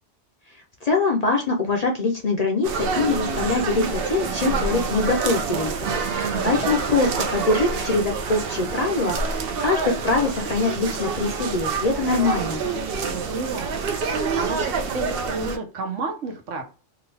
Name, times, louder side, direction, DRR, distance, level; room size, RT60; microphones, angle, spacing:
voice 1, 0.8-12.6, left 3 dB, 50° left, 1 dB, 0.5 m, -23 dB
sound 1, 2.6-15.6, right 5 dB, 60° right, 0.7 m, -27 dB
voice 2, 6.1-6.8 13.1-16.6, right 4 dB, 85° right, 4 dB, 1.2 m, -32 dB
2.7 x 2.5 x 3.2 m, 0.35 s
omnidirectional pair, 1.2 m